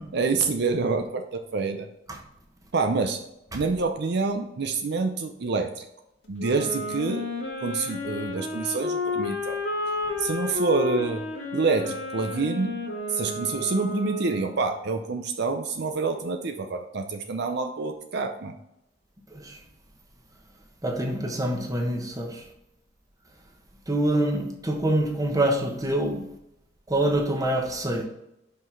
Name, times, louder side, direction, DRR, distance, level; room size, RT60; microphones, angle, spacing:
voice 1, 0.1-1.9 2.7-3.2 3.5-5.8 6.3-9.6 10.2-11.3 11.5-12.8 13.1-18.6, right 4 dB, 60° right, 6 dB, 0.5 m, -27 dB
Wind instrument woodwind instrument, 6.4-14.7, left 3 dB, 90° left, 1.6 m, -32 dB
voice 2, 20.8-22.4 23.9-26.2 26.9-28.0, right 1 dB, 20° right, 2 dB, 1.1 m, -25 dB
5.7 x 5.3 x 4.5 m, 0.84 s
head